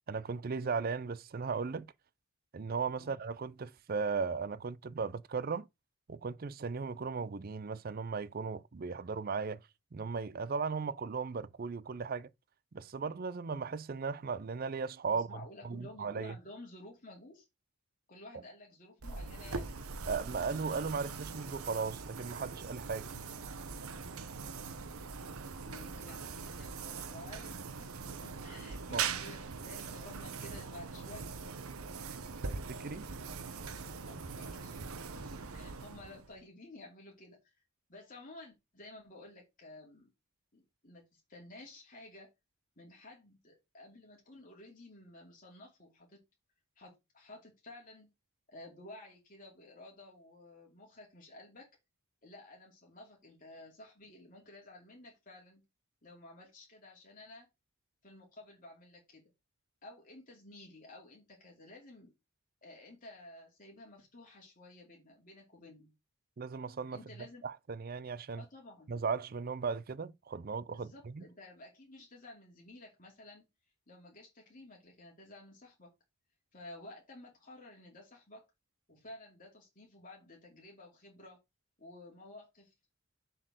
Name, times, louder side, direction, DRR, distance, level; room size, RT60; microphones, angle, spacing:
voice 1, 0.1-1.9 2.5-5.7 6.1-9.6 9.9-12.3 12.7-15.4 15.6-16.4 20.1-23.1 28.9-29.1 32.5-33.1 66.4-67.0 67.4-68.4 68.9-71.3, right 5 dB, 40° right, 0.4 m, -37 dB
voice 2, 15.1-17.5 18.1-19.7 25.6-31.3 34.1-34.8 35.1-37.5 37.9-40.1 40.5-42.3 42.8-46.2 46.8-48.1 48.5-51.7 52.2-55.6 56.0-57.5 58.0-59.2 59.8-62.1 62.6-65.9 66.9-67.4 68.4-68.9 70.7-73.4 73.9-75.9 76.5-78.4 78.9-81.4 81.8-82.7, left 2 dB, 40° left, 2.5 m, -53 dB
sound 1, 19.0-36.4, right 5 dB, 75° right, 1.0 m, -42 dB
7.2 x 4.6 x 6.5 m
head